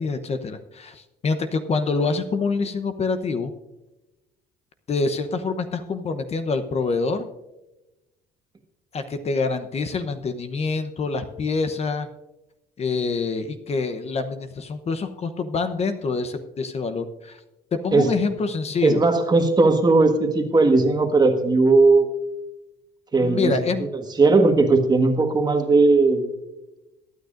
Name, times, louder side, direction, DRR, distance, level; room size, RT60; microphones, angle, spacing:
voice 1, 0.0-3.5 4.9-7.3 8.9-12.1 12.8-17.4 17.8-19.0 23.2-23.9, left 4 dB, 40° left, 8 dB, 0.9 m, -26 dB
voice 2, 18.8-22.1 23.1-26.3, right 3 dB, 25° right, 5 dB, 1.5 m, -18 dB
22.0 x 9.4 x 2.6 m, 0.98 s
cardioid pair, 110°, 17 cm